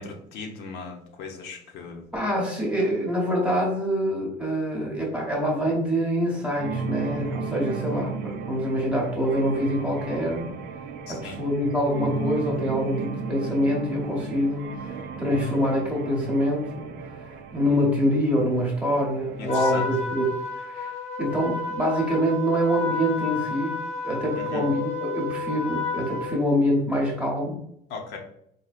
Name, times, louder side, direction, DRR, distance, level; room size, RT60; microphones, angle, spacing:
voice 1, 0.0-2.1 11.1-11.4 19.4-19.8 24.4-24.7 27.9-28.2, left 4 dB, 75° left, 2 dB, 0.7 m, -37 dB
voice 2, 2.1-10.5 11.1-20.3 20.6-20.9 21.2-23.7 24.0-27.6, equal, 5° right, -3 dB, 0.9 m, -25 dB
sound 1, 6.5-19.8, right 5 dB, 70° right, 0.4 m, -34 dB
Trumpet, 19.5-26.4, left 5 dB, 35° left, 0.8 m, -31 dB
4.2 x 2.7 x 2.4 m, 0.73 s
cardioid pair, 155°, 17 cm